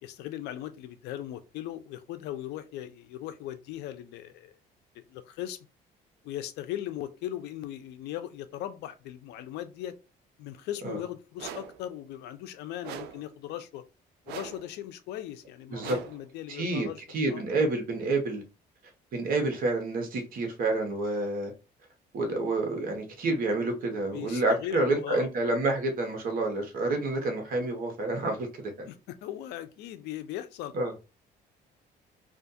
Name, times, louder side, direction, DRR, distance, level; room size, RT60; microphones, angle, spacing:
voice 1, 0.0-4.6 4.9-5.6 6.2-10.0 10.4-13.8 14.3-17.0 17.3-17.4 24.1-25.3 28.8-30.7, left 12 dB, 80° left, 0.4 m, -38 dB
sound 1, 11.4-11.8 12.8-13.3 14.3-14.7 15.8-16.3, right 8 dB, 75° right, 0.4 m, -41 dB
voice 2, 16.5-16.9 17.1-18.4 19.1-21.5 22.1-28.9 30.7-30.9, right 2 dB, 60° right, 0.9 m, -28 dB
2.4 x 2.3 x 2.6 m
cardioid pair, 110°, 17 cm